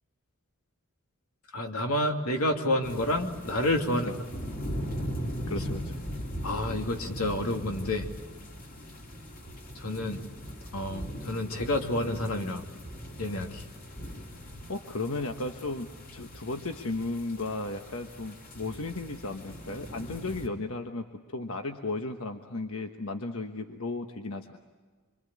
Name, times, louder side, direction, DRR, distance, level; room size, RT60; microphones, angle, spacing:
voice 1, 1.5-4.1 6.4-8.1 9.8-10.2 10.7-12.6 13.2-13.6, left 1 dB, 90° left, 3 dB, 2.7 m, -29 dB
sound 1, 2.8-20.5, equal, 40° left, 3.3 m, -40 dB
voice 2, 5.5-5.9 14.7-24.6, left 2 dB, 70° left, 5 dB, 1.3 m, -35 dB
26.5 x 25.0 x 8.6 m, 1.5 s
head